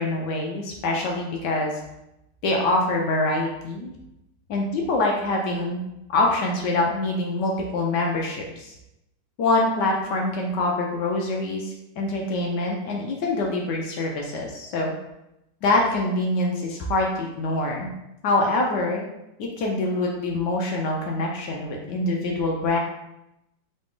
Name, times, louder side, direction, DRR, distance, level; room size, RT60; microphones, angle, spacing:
voice 1, 0.0-1.7 2.4-3.9 4.5-5.8 6.1-8.7 9.4-14.9 15.6-17.9 18.2-19.0 19.4-22.8, left 2 dB, 70° left, 0 dB, 1.1 m, -25 dB
3.9 x 3.1 x 3.7 m, 0.87 s
omnidirectional pair, 2.3 m